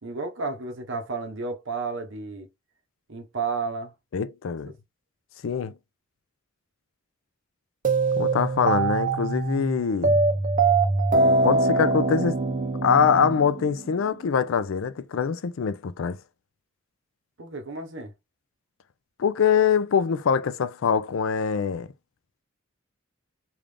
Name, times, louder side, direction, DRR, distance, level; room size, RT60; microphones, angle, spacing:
voice 1, 0.0-2.5 3.1-3.9 17.4-18.1, right 4 dB, 65° right, 0.9 m, -32 dB
voice 2, 4.1-4.7 5.4-5.7 8.2-10.1 11.4-12.4 12.8-16.2 19.2-21.9, left 6 dB, 75° left, 0.4 m, -23 dB
sound 1, 7.8-14.0, right 3 dB, 40° right, 0.6 m, -23 dB
3.5 x 2.5 x 3.3 m
head